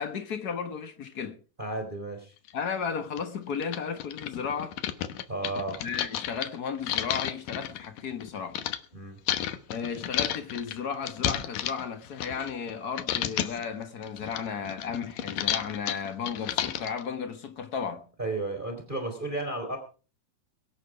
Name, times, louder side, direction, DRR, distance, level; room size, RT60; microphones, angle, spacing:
voice 1, 0.0-1.4 2.5-4.8 5.8-8.6 9.7-18.0, left 6 dB, 65° left, 0.9 m, -34 dB
voice 2, 1.6-2.3 5.3-5.8 8.9-9.2 18.2-19.8, right 2 dB, 15° right, 3.2 m, -33 dB
sound 1, 2.5-2.6 3.2-3.3 3.6-8.8 9.3-12.7 13.0-13.6 14.0-17.0, left 11 dB, 85° left, 2.7 m, -32 dB
23.0 x 9.2 x 4.8 m
omnidirectional pair, 3.8 m